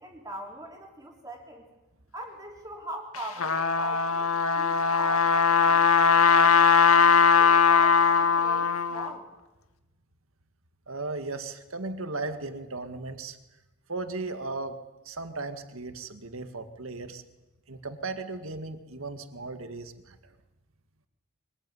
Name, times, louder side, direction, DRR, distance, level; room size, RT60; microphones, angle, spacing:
voice 1, 0.0-1.6 2.1-6.6 7.4-9.3, right 1 dB, 15° right, 0 dB, 3.2 m, -41 dB
Trumpet, 3.1-9.1, left 6 dB, 90° left, 1.8 m, -20 dB
voice 2, 10.9-13.4 13.9-14.8 15.1-17.2 17.7-20.2, right 3 dB, 75° right, 8 dB, 2.0 m, -36 dB
24.0 x 21.0 x 9.6 m, 1.0 s
head